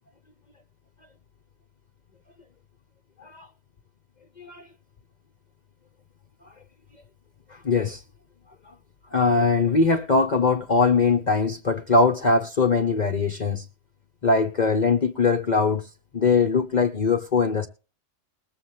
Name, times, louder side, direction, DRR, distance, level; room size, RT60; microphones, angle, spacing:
voice 1, 7.5-8.0 9.1-13.6 14.2-15.9 16.1-17.7, left 4 dB, 40° left, 0.9 m, -21 dB
21.0 x 7.6 x 3.2 m
omnidirectional pair, 1.2 m